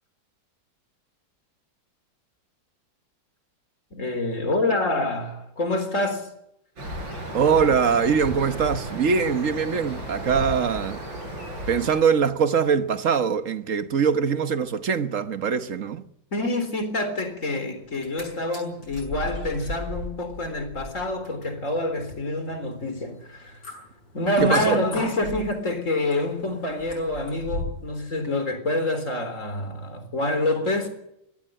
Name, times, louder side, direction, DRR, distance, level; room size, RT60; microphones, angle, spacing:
voice 1, 3.9-6.3 16.3-23.6 24.1-30.9, left 1 dB, 40° left, 4.1 m, -27 dB
sound 1, 6.8-12.0, equal, 80° right, 7.6 m, -34 dB
voice 2, 7.3-11.0 11.7-16.1 24.4-24.8, right 6 dB, 50° right, 1.4 m, -22 dB
sound 2, 17.9-18.2 18.5-27.9 28.2-28.3, left 1 dB, 60° left, 7.7 m, -37 dB
22.5 x 16.5 x 7.8 m
omnidirectional pair, 2.0 m